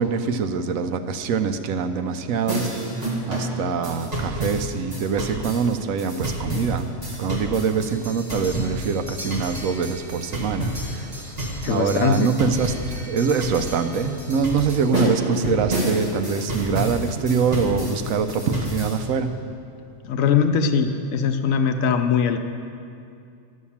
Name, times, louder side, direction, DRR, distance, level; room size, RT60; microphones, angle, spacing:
voice 1, 0.0-2.7 3.0-6.9 7.2-11.3 11.6-19.4, right 5 dB, 90° right, 9 dB, 1.1 m, -24 dB
sound 1, 2.5-19.0, right 1 dB, 30° right, 1.9 m, -29 dB
voice 2, 11.6-12.3 20.0-22.4, left 6 dB, 80° left, 7 dB, 1.1 m, -21 dB
12.0 x 6.5 x 7.1 m, 2.5 s
omnidirectional pair, 1.4 m